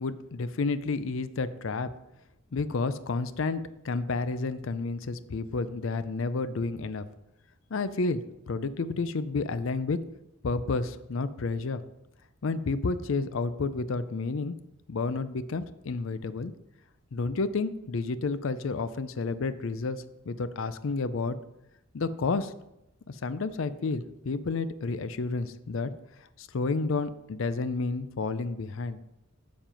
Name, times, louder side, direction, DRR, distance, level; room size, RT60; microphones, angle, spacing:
voice 1, 0.0-1.9 2.5-7.0 7.7-10.0 10.4-11.8 12.4-14.5 14.9-16.5 17.1-21.4 21.9-22.5 23.1-25.9 26.4-29.0, left 3 dB, 65° left, 13 dB, 0.5 m, -30 dB
7.4 x 7.3 x 5.1 m, 0.87 s
head